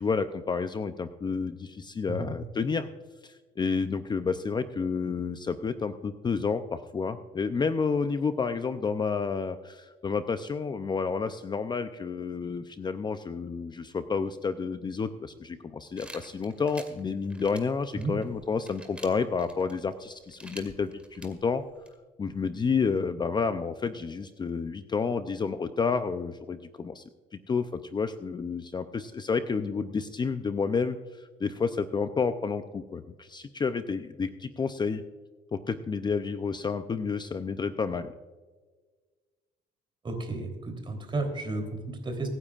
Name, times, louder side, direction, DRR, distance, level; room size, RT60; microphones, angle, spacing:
voice 1, 0.0-2.9 3.2-21.6 22.2-27.0 27.3-35.0 35.5-38.1, left 5 dB, 25° left, 10 dB, 0.6 m, -30 dB
sound 1, 16.0-21.9, right 1 dB, 5° right, 2.2 m, -49 dB
voice 2, 40.0-42.3, right 2 dB, 30° right, 4 dB, 3.5 m, -33 dB
24.5 x 9.9 x 2.5 m, 1.4 s
cardioid pair, 110°, 17 cm